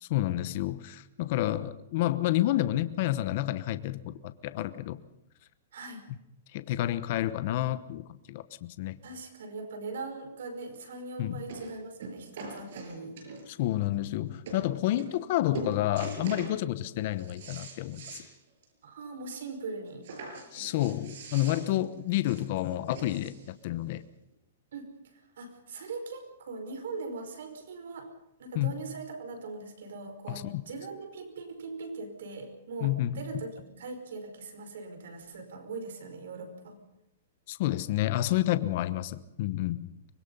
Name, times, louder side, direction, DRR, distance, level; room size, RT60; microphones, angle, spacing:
voice 1, 0.0-5.0 6.5-8.4 8.8-9.0 11.2-11.4 13.5-18.2 20.5-24.0 28.5-28.7 30.3-30.6 32.8-33.2 37.5-39.9, left 14 dB, 40° left, 1.0 m, -29 dB
voice 2, 9.0-13.2 18.8-20.1 20.5-21.0 24.7-28.1 28.4-36.8, right 3 dB, 70° right, 5.1 m, -41 dB
sound 1, 10.7-10.8 11.5-11.7 12.0-13.6 14.2-14.3 14.5-14.6 15.0-15.3 15.5-16.6 17.0-18.3 18.6-18.7 19.0-19.1 20.0-23.5 24.3-24.4, right 4 dB, 55° right, 6.4 m, -42 dB
24.5 x 21.0 x 5.5 m
hypercardioid pair, 165°, 0 cm